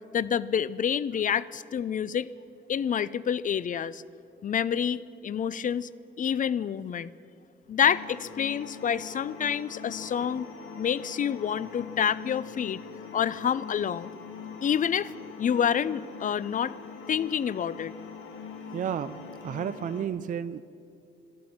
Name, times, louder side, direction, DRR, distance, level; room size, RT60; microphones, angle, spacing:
voice 1, 0.1-2.3 2.7-4.0 4.4-5.9 6.2-7.1 7.7-10.5 10.8-12.8 13.1-14.1 14.6-15.1 15.4-16.7 17.1-17.9, left 8 dB, 40° left, 18 dB, 0.5 m, -28 dB
sound 1, 7.8-20.1, left 5 dB, 80° left, 1.8 m, -43 dB
voice 2, 18.7-20.6, right 8 dB, 40° right, 13 dB, 0.4 m, -32 dB
13.0 x 12.0 x 8.7 m, 2.5 s
cardioid pair, 90°, 20 cm